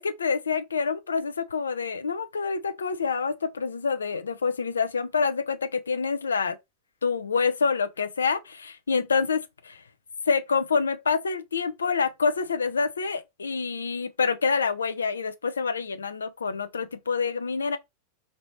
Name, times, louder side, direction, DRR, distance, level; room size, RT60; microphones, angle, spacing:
voice 1, 0.0-6.6 7.0-9.4 9.7-9.8 10.3-17.8, left 5 dB, 70° left, 0.5 m, -27 dB
4.8 x 2.7 x 3.1 m
figure-of-eight pair, 90°, 0 cm